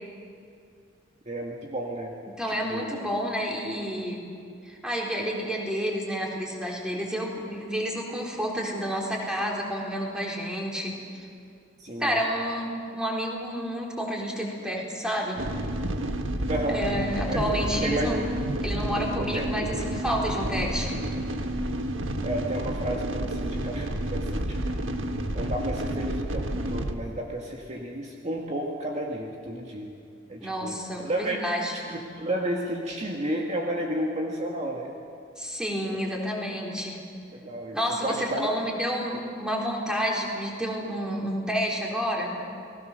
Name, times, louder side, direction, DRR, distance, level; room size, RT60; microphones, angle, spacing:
voice 1, 1.3-2.2 2.5-2.9 11.8-12.2 16.5-16.8 17.3-17.4 17.8-18.2 19.3-19.5 22.2-24.8 25.3-29.9 30.3-30.7 31.0-31.4 31.9-35.0 37.3-37.8 38.0-38.5, right 1 dB, 35° right, -1 dB, 2.0 m, -32 dB
voice 2, 2.3-4.2 4.6-11.3 12.0-15.4 16.7-18.2 18.6-20.9 30.4-31.7 35.4-37.0 37.7-42.4, equal, 5° right, -2 dB, 4.0 m, -30 dB
sound 1, 15.4-26.9, right 1 dB, 85° right, 1.5 m, -30 dB
29.5 x 20.0 x 6.7 m, 2.4 s
head